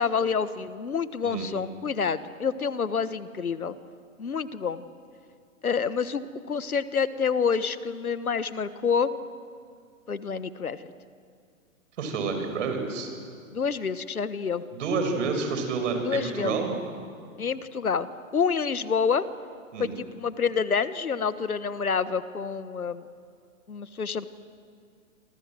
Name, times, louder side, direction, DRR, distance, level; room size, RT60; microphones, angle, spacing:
voice 1, 0.0-3.7 4.2-4.8 5.6-9.1 10.1-10.8 13.5-14.6 16.0-16.5 17.4-18.1 18.3-19.2 19.8-23.0 23.7-24.3, left 6 dB, 90° left, 14 dB, 1.4 m, -28 dB
voice 2, 12.0-13.1 14.7-16.7 19.7-19.9, right 4 dB, 60° right, 5 dB, 6.8 m, -29 dB
27.5 x 25.5 x 7.7 m, 2.3 s
hypercardioid pair, 120°, 42 cm